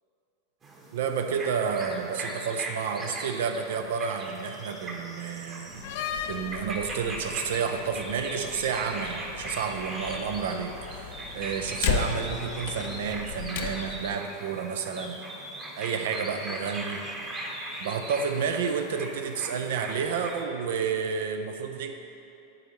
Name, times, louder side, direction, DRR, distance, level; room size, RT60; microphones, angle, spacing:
sound 1, 0.6-20.4, right 1 dB, 25° right, 1.2 m, -39 dB
voice 1, 0.9-5.9 6.3-15.2 15.8-17.0 17.8-21.9, right 6 dB, 60° right, 6 dB, 0.5 m, -30 dB
Slam, 5.7-14.1, left 7 dB, 55° left, 0.4 m, -35 dB
11.5 x 4.3 x 3.1 m, 2.8 s
figure-of-eight pair, 90°, 0 cm